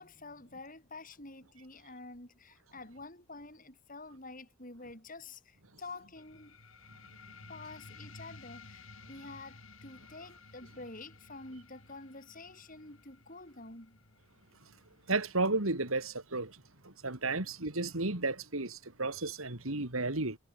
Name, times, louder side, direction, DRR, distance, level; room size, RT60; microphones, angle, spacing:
voice 1, 0.0-6.6 7.5-14.0, left 3 dB, 40° left, 7.2 m, -48 dB
sound 1, 6.2-17.2, left 3 dB, 70° left, 5.9 m, -55 dB
voice 2, 15.1-20.4, right 2 dB, 75° right, 3.2 m, -33 dB
head